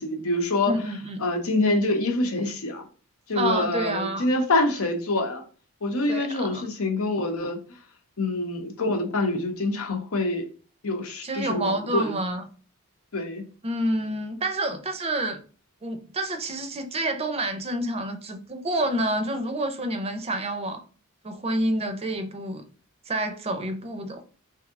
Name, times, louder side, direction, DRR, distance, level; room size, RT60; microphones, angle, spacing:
voice 1, 0.0-0.7 1.2-2.8 3.3-5.4 5.8-7.6 8.2-10.5 10.8-12.2 13.1-13.4, left 2 dB, 80° left, 0.8 m, -26 dB
voice 2, 0.7-1.2 3.3-4.3 6.1-6.6 11.2-12.4 13.6-15.4 15.8-20.8 21.2-22.6 23.1-24.2, right 1 dB, 30° right, 0.5 m, -28 dB
3.3 x 2.7 x 3.5 m
head